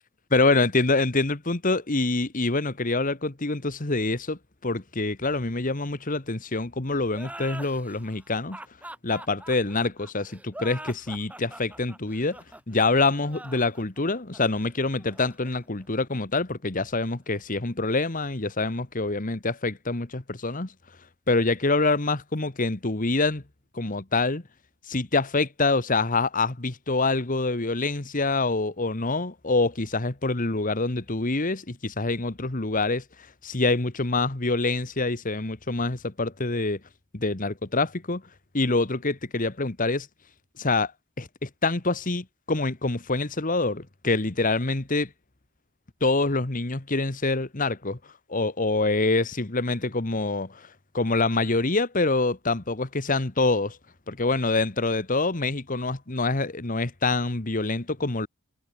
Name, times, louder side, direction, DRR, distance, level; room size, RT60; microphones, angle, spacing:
voice 1, 0.3-8.6 9.0-12.4 12.7-20.7 21.3-23.4 23.7-24.4 24.9-33.0 33.4-36.8 37.1-38.2 38.5-40.1 40.6-40.9 41.2-45.1 46.0-48.0 48.3-50.7 50.9-53.8 54.1-58.3, left 3 dB, 40° left, 1.5 m, -26 dB
sound 1, 7.1-16.4, right 1 dB, 5° right, 5.1 m, -44 dB
head